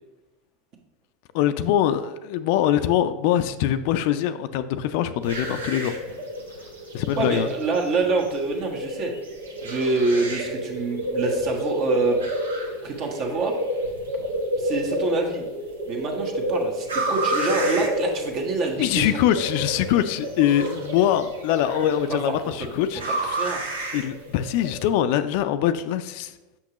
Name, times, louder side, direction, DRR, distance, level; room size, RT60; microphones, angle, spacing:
voice 1, 1.3-5.9 6.9-7.5 18.8-23.5 23.9-26.3, left 11 dB, 60° left, 11 dB, 0.3 m, -23 dB
sound 1, 5.2-24.9, right 1 dB, 85° right, 1.0 m, -30 dB
voice 2, 7.2-9.1 9.6-12.2 12.8-13.5 14.6-15.4 15.9-19.1 22.1-22.3 22.6-22.7 23.3-23.7, right 3 dB, 50° right, 2 dB, 1.3 m, -26 dB
6.0 x 5.8 x 3.0 m, 1.1 s
hypercardioid pair, 90°, 0 cm